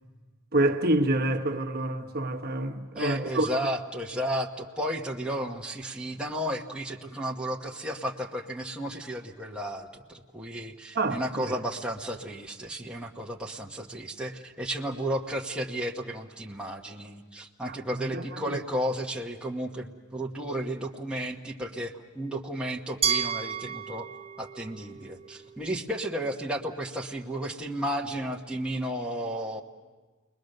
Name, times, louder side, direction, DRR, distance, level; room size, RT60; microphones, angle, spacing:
voice 1, 0.5-3.5 10.9-11.4 17.7-18.6, right 1 dB, 50° right, 1.1 m, -27 dB
voice 2, 2.9-24.1 24.4-29.6, equal, 5° right, 1.1 m, -33 dB
Glass, 23.0-25.9, right 7 dB, 30° right, 0.6 m, -32 dB
29.5 x 21.5 x 6.6 m
head